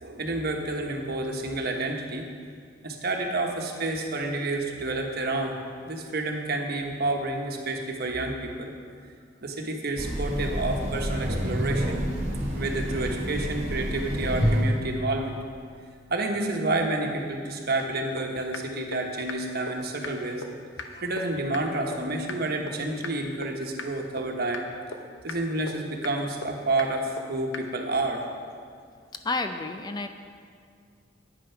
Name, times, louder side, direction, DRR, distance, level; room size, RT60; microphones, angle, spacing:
voice 1, 0.0-2.3 2.8-5.6 5.9-8.7 9.4-12.1 12.5-15.4 16.1-20.4 20.8-24.6 25.2-28.2, right 2 dB, 55° right, 2 dB, 1.2 m, -29 dB
Train, 10.0-14.9, equal, 35° right, 1.8 m, -28 dB
sound 1, 17.8-17.9 18.2-18.3 18.5-18.6 18.9-19.0 19.3-19.4 19.7-19.8 20.0-20.1 20.4-20.5 20.8-20.9 21.2-21.3 21.5-21.6 21.9-22.0 22.3-22.4 22.7-22.8 23.0-23.1 23.4-23.5 23.8-23.9 24.2-24.3 24.5-24.6 24.9-25.0 25.3-25.4 25.7-25.8 26.0-26.1 26.4-26.5 26.8-26.9 27.2-27.3 27.5-27.6, left 4 dB, 80° left, 0.9 m, -35 dB
voice 2, 29.1-30.1, left 3 dB, 20° left, 7 dB, 0.4 m, -30 dB
9.5 x 8.9 x 5.8 m, 2.2 s
head